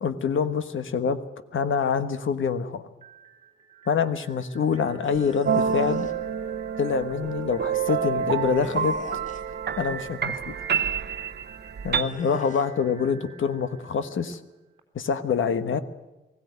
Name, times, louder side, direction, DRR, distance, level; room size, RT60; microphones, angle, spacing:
voice 1, 0.0-1.2 1.5-2.8 3.9-6.1 6.8-8.9 9.8-10.6 11.8-14.4 14.9-15.8, left 6 dB, 75° left, 10 dB, 1.3 m, -26 dB
sound 1, 3.0-14.8, right 8 dB, 30° right, 3.8 m, -50 dB
sound 2, 5.0-6.1 8.6-9.6 12.0-12.7, left 3 dB, 35° left, 1.7 m, -42 dB
sound 3, 5.5-12.0, right 7 dB, 55° right, 0.9 m, -28 dB
20.5 x 16.0 x 9.5 m, 1.0 s
wide cardioid pair, 170°, 21 cm